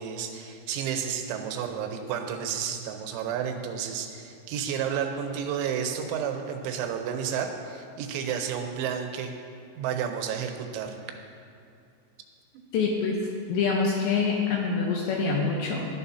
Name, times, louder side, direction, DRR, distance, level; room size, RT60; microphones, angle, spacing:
voice 1, 0.0-9.3 9.7-11.0, right 8 dB, 80° right, 5 dB, 3.3 m, -31 dB
voice 2, 12.7-13.2 13.5-15.9, left 4 dB, 75° left, -2 dB, 3.0 m, -25 dB
17.0 x 11.5 x 2.8 m, 2.5 s
omnidirectional pair, 5.5 m